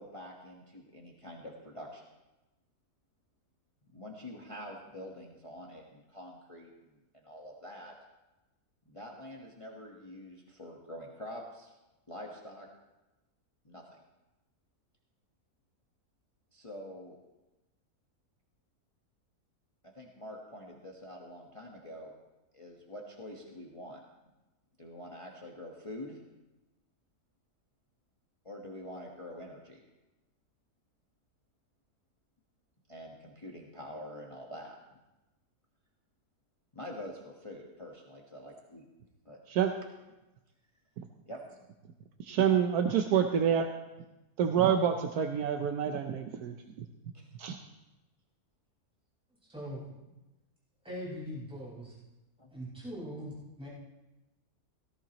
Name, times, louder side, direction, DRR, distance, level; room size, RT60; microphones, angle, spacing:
voice 1, 0.0-2.1 3.8-7.9 8.9-11.7 12.1-12.7 13.6-14.0 16.5-17.2 19.9-22.1 22.5-24.0 24.8-26.2 28.4-29.8 32.9-34.8 36.7-38.8 39.2-39.4 41.3-41.6 47.1-47.3 52.4-52.5, left 1 dB, 20° left, -1 dB, 1.3 m, -46 dB
voice 2, 42.2-43.7 44.4-46.9 47.4-47.6, right 8 dB, 80° right, 5 dB, 1.3 m, -27 dB
voice 3, 49.5-49.8 50.8-51.9 52.5-53.7, equal, 5° right, -7 dB, 4.9 m, -41 dB
17.5 x 14.5 x 3.0 m, 1.0 s
omnidirectional pair, 1.6 m